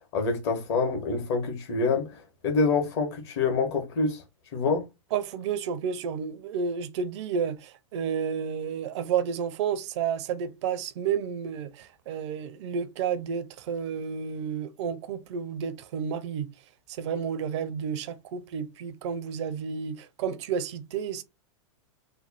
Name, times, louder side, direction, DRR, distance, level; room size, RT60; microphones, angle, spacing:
voice 1, 0.1-4.2 4.5-4.8, left 4 dB, 55° left, 1.4 m, -26 dB
voice 2, 5.1-16.5 16.9-21.2, right 7 dB, 55° right, 0.6 m, -31 dB
3.3 x 2.3 x 4.1 m
hypercardioid pair, 100°, 17 cm